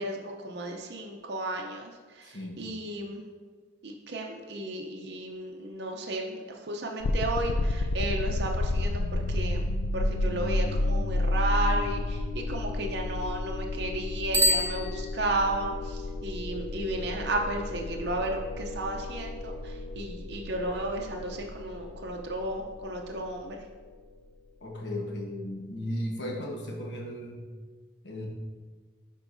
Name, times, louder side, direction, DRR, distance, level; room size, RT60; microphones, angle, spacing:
voice 1, 0.0-3.2 3.8-23.6, right 2 dB, 60° right, 1 dB, 0.6 m, -33 dB
voice 2, 2.2-2.6 24.6-27.4 28.0-28.3, left 1 dB, 65° left, 0 dB, 1.2 m, -35 dB
sound 1, 7.0-23.9, left 2 dB, 85° left, 0.4 m, -31 dB
Bicycle bell, 14.3-15.6, equal, 10° right, 0.3 m, -27 dB
10.5 x 4.6 x 2.6 m, 1.5 s
head